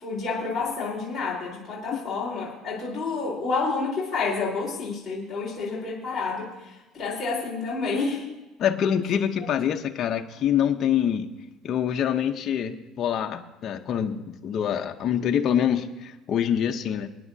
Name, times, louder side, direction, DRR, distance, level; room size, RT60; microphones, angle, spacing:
voice 1, 0.0-8.3 9.4-9.5, left 4 dB, 15° left, -7 dB, 3.9 m, -29 dB
voice 2, 8.6-11.3 11.6-17.1, left 9 dB, 40° left, 4 dB, 0.7 m, -25 dB
28.0 x 9.7 x 2.7 m, 1.0 s
cardioid pair, 150°, 0 cm